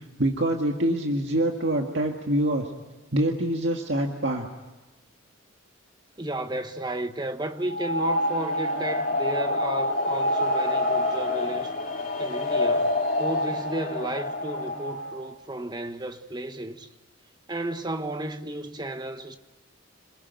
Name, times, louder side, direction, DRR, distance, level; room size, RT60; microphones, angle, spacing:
voice 1, 0.2-2.7 3.1-4.5, right 1 dB, 65° right, 1.9 m, -25 dB
voice 2, 6.2-11.8 12.2-16.9 17.5-19.4, right 1 dB, 20° right, 1.2 m, -33 dB
sound 1, 7.6-15.3, left 1 dB, 40° left, 2.8 m, -27 dB
28.0 x 21.0 x 9.5 m
head